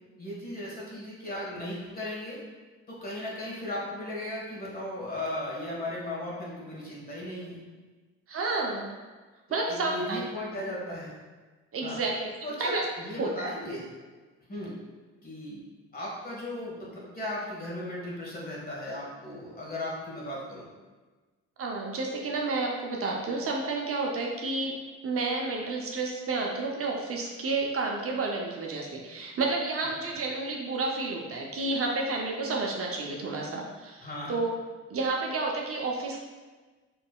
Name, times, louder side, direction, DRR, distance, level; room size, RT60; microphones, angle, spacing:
voice 1, 0.2-2.4 2.9-7.6 9.7-11.1 11.8-12.0 12.4-13.8 14.5-14.7 15.2-15.6 15.9-20.7 30.1-30.2 34.0-34.4, left 1 dB, 30° left, -5 dB, 1.4 m, -36 dB
voice 2, 8.3-8.9 9.5-10.2 11.7-12.3 12.6-12.8 13.1-13.5 21.6-24.7 25.0-34.5 34.9-36.2, right 3 dB, 50° right, -1 dB, 0.6 m, -30 dB
4.6 x 3.2 x 2.3 m, 1.3 s
cardioid pair, 90°, 30 cm